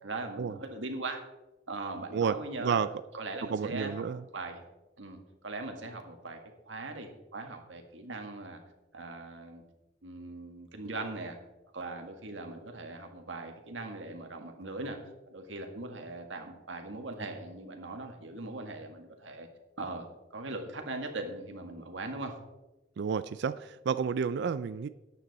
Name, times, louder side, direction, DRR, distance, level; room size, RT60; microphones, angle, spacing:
voice 1, 0.0-1.2 1.7-2.8 3.1-4.0 4.3-4.6 5.0-6.4 6.7-8.6 8.9-9.6 10.0-11.4 11.7-15.0 15.3-19.5 19.8-20.1 20.3-22.3, right 2 dB, 85° right, 4 dB, 1.8 m, -40 dB
voice 2, 3.5-4.2 23.0-24.9, right 6 dB, 65° right, 14 dB, 0.4 m, -30 dB
13.0 x 9.4 x 4.1 m, 1.1 s
head